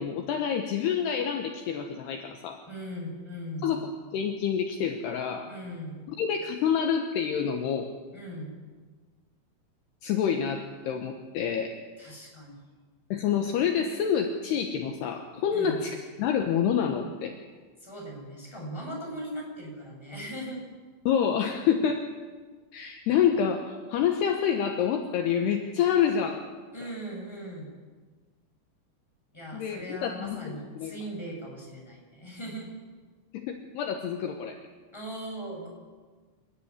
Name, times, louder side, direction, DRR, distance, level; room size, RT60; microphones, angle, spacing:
voice 1, 0.0-2.6 3.6-5.5 6.1-7.9 10.0-11.8 13.1-17.4 21.1-22.0 22.7-26.4 29.5-30.9 33.3-34.6, left 8 dB, 70° left, 4 dB, 3.0 m, -27 dB
voice 2, 2.7-3.8 5.5-6.0 8.1-8.5 12.0-12.6 15.5-15.8 17.8-20.6 26.7-27.7 29.3-32.7 34.9-35.7, right 1 dB, 5° left, -2 dB, 6.9 m, -39 dB
28.0 x 13.0 x 9.7 m, 1.4 s
omnidirectional pair, 5.4 m